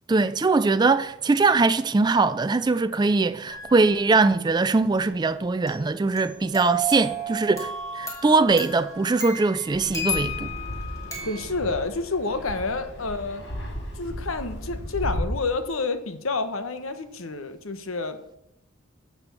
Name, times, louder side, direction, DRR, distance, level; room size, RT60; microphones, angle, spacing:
voice 1, 0.1-10.5, right 3 dB, 20° right, 0.3 m, -21 dB
sound 1, 3.5-3.9 5.7-11.4, right 1 dB, 15° left, 2.7 m, -33 dB
Fixed-wing aircraft airplane, 9.7-15.2, equal, 55° left, 2.2 m, -35 dB
voice 2, 11.3-13.5 14.0-18.4, left 3 dB, 80° left, 1.0 m, -29 dB
10.5 x 6.9 x 6.8 m
head